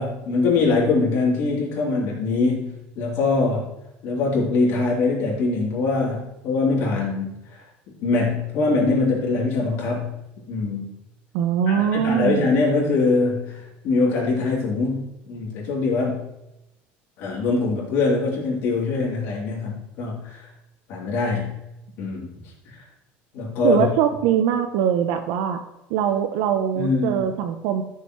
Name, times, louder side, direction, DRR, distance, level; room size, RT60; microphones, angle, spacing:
voice 1, 0.0-3.7 4.0-7.6 8.0-10.2 10.5-10.9 11.7-16.2 17.2-20.5 20.9-21.5 22.0-22.3 23.3-23.8 26.7-27.2, left 3 dB, 55° left, -4 dB, 3.1 m, -23 dB
voice 2, 11.3-12.5 23.6-25.6 25.9-27.8, right 9 dB, 75° right, 7 dB, 0.7 m, -22 dB
12.5 x 6.8 x 3.1 m, 0.90 s
cardioid pair, 165°, 5 cm